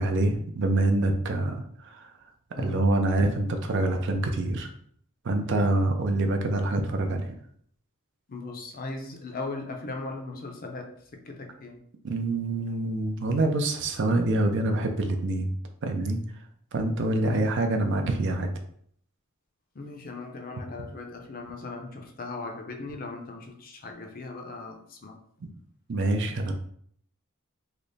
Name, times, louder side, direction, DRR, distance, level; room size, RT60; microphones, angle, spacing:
voice 1, 0.0-2.1 2.6-4.7 5.2-7.3 12.0-15.5 15.8-16.2 16.7-18.5 25.9-26.5, right 2 dB, 55° right, 5 dB, 0.5 m, -26 dB
voice 2, 8.3-11.8 17.2-17.5 19.7-25.2, left 3 dB, 40° left, 3 dB, 0.5 m, -38 dB
3.3 x 2.0 x 3.9 m, 0.64 s
head